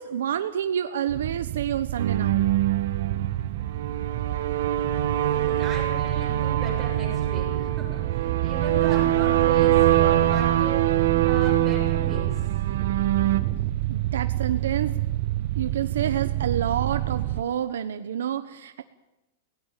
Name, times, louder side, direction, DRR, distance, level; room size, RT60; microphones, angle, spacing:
voice 1, 0.0-2.4 13.9-14.9 15.5-18.8, right 9 dB, 90° right, 10 dB, 1.1 m, -28 dB
sound 1, 1.1-17.4, right 15 dB, 40° right, 0.7 m, -29 dB
sound 2, 2.0-13.4, right 13 dB, 65° right, 1.4 m, -24 dB
voice 2, 5.1-12.6, right 3 dB, 10° right, -4 dB, 7.5 m, -38 dB
19.0 x 17.0 x 9.0 m, 0.94 s
supercardioid pair, 170°, 0 cm